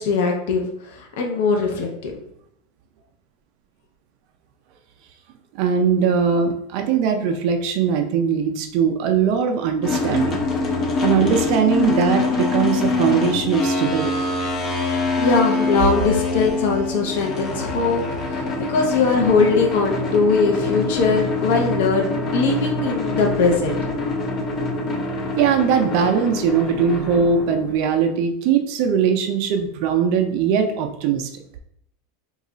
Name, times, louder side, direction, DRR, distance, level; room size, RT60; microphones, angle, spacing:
voice 1, 0.0-2.1 15.2-23.8, left 4 dB, 65° left, 1 dB, 0.6 m, -21 dB
voice 2, 5.5-10.4 11.0-14.1 25.4-31.3, right 6 dB, 50° right, 6 dB, 0.4 m, -20 dB
sound 1, 9.8-27.7, left 3 dB, 30° left, 0.6 m, -25 dB
3.0 x 2.3 x 3.8 m, 0.76 s
supercardioid pair, 165°, 0 cm